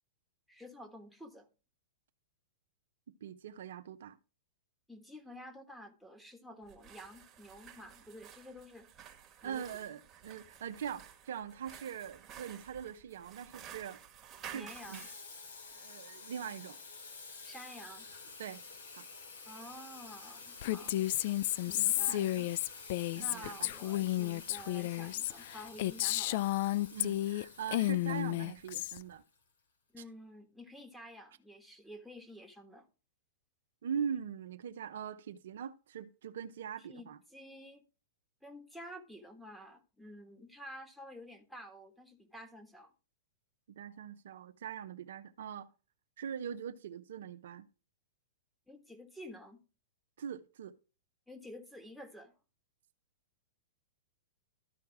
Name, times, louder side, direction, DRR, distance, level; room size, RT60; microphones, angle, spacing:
voice 1, 0.5-1.5 4.9-8.9 9.4-9.9 14.5-15.1 17.4-18.1 19.4-21.0 21.7-22.5 23.2-26.5 29.9-32.9 36.8-37.8 38.4-42.9 48.7-49.6 51.3-52.3, equal, ahead, 1.5 m, -50 dB
voice 2, 3.2-4.2 9.4-14.0 14.5-15.0 15.7-16.8 18.4-18.6 18.9-19.1 20.8-21.0 21.7-22.5 23.1-23.7 26.9-29.2 33.8-37.2 43.7-45.7 46.2-47.7 50.2-50.7, right 8 dB, 70° right, 0.7 m, -42 dB
sound 1, 6.6-15.2, right 9 dB, 25° right, 1.5 m, -52 dB
Water tap faucet / Sink (filling or washing), 14.7-29.4, left 4 dB, 75° left, 3.4 m, -50 dB
Female speech woman speaking, 20.6-27.4 27.7-29.0, left 16 dB, 55° left, 0.3 m, -32 dB
13.0 x 4.6 x 4.7 m
hypercardioid pair, 110°, 0 cm